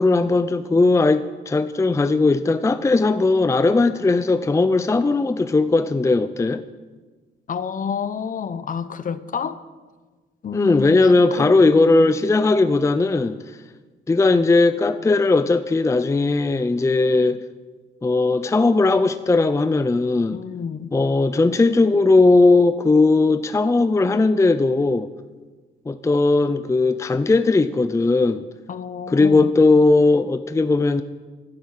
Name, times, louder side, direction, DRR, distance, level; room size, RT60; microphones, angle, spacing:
voice 1, 0.0-6.6 10.5-13.4 14.1-17.4 18.0-20.4 20.9-25.1 25.9-28.4 29.1-31.0, left 3 dB, 15° left, 11 dB, 0.5 m, -18 dB
voice 2, 7.5-9.6 10.4-11.1 11.4-12.1 20.3-20.9 28.7-29.5, left 7 dB, 45° left, 13 dB, 0.9 m, -29 dB
15.0 x 12.5 x 6.6 m, 1.3 s
cardioid pair, 120°, 19 cm